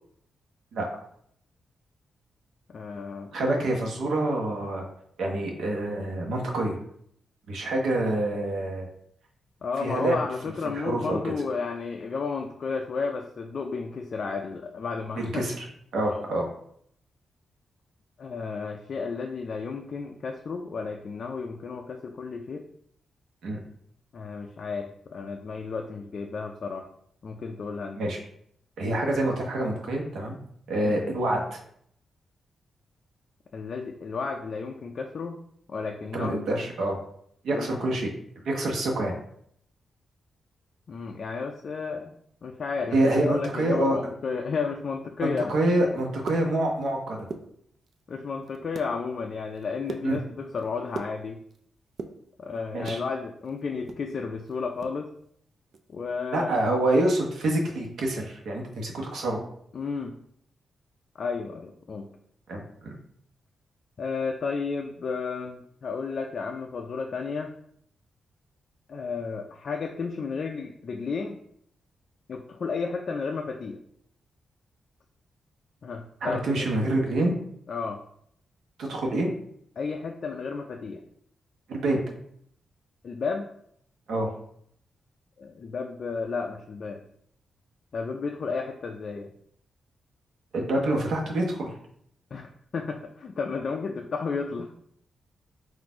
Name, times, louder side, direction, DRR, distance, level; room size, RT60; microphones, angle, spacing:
voice 1, 2.7-3.4 9.6-15.5 16.1-16.3 18.2-22.6 24.1-26.9 27.2-28.0 30.8-31.0 33.5-35.4 35.7-36.5 37.5-37.7 40.9-45.5 48.1-51.4 52.4-55.1 55.9-56.5 59.7-60.2 61.2-62.1 64.0-67.5 68.9-71.4 72.3-73.8 75.8-76.7 77.7-78.0 79.8-81.0 83.0-83.5 85.4-87.0 87.9-89.3 92.3-94.7, left 4 dB, 45° left, 3 dB, 0.3 m, -32 dB
voice 2, 3.3-4.9 5.2-6.8 7.5-8.9 9.8-10.2 10.7-11.3 15.2-15.7 15.9-16.5 23.4-23.6 27.9-28.2 28.8-30.4 30.7-31.6 36.1-37.0 37.4-38.1 38.4-39.1 42.9-44.0 45.2-47.2 50.0-50.2 52.7-53.0 56.3-59.4 62.5-63.0 76.2-77.3 78.8-79.3 81.7-82.0 84.1-84.3 90.5-91.7, right 1 dB, 75° right, 0 dB, 1.0 m, -26 dB
sound 1, 46.0-46.9 47.2-48.0 48.4-48.9 49.3-51.6 51.9-53.1 53.4-55.0 55.2-55.3 55.7-55.9 56.3-56.5, right 4 dB, 50° right, 0.4 m, -40 dB
4.2 x 2.5 x 4.4 m, 0.68 s
wide cardioid pair, 165°, 0 cm